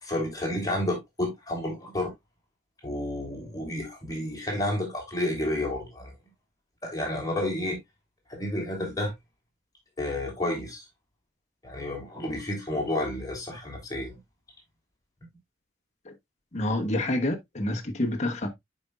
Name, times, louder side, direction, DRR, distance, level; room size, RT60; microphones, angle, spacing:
voice 1, 0.0-2.1 2.8-6.1 6.8-7.8 8.3-9.1 10.0-10.8 11.6-14.2, left 1 dB, 20° left, 3.0 m, -30 dB
voice 2, 16.5-18.5, left 1 dB, 40° left, 1.4 m, -28 dB
9.6 x 5.2 x 2.4 m
head